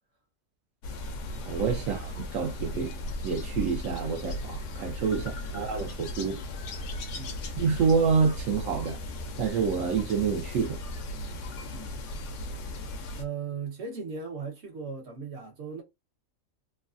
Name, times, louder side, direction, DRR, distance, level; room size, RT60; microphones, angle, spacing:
sound 1, 0.8-13.2, left 1 dB, 70° left, 0.9 m, -37 dB
voice 1, 1.4-2.9 3.2-6.4 7.6-9.0 9.4-10.8, right 5 dB, 80° right, 1.0 m, -27 dB
voice 2, 5.1-5.6 7.1-7.5 11.7-12.0 13.2-15.8, right 5 dB, 55° right, 1.2 m, -38 dB
3.1 x 2.2 x 2.4 m
omnidirectional pair, 1.4 m